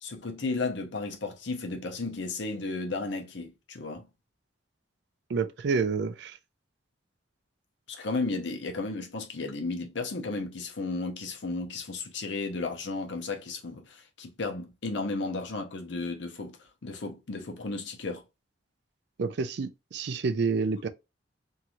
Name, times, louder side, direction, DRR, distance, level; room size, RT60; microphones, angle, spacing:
voice 1, 0.0-4.1 7.9-18.2, left 3 dB, 65° left, 0.8 m, -34 dB
voice 2, 5.3-6.4 19.2-20.9, right 4 dB, 60° right, 0.4 m, -28 dB
3.0 x 2.7 x 2.4 m
head